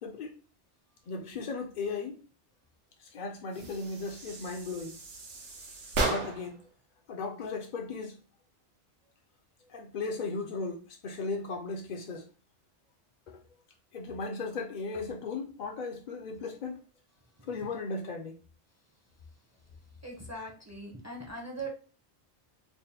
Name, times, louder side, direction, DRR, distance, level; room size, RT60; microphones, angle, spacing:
voice 1, 0.0-0.4 1.1-2.2 3.0-5.0 6.0-6.6 7.1-8.2 9.7-12.3 13.3-13.4 13.9-16.8 17.5-18.4, left 4 dB, 55° left, 0.6 m, -36 dB
sound 1, 3.5-6.6, right 2 dB, 80° right, 1.2 m, -35 dB
voice 2, 20.0-21.7, right 2 dB, 15° right, 0.6 m, -40 dB
3.5 x 2.2 x 4.1 m
omnidirectional pair, 1.2 m